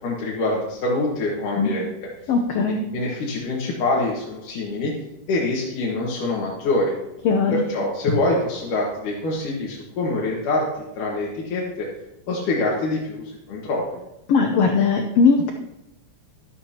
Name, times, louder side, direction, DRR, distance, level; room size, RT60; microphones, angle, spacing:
voice 1, 0.0-1.9 2.7-4.9 5.3-6.9 7.5-11.9 12.3-14.0, left 2 dB, 70° left, -4 dB, 3.1 m, -25 dB
voice 2, 2.3-2.8 7.2-7.6 14.3-15.5, left 5 dB, 85° left, 3 dB, 1.4 m, -19 dB
12.5 x 11.5 x 2.9 m, 0.87 s
omnidirectional pair, 3.9 m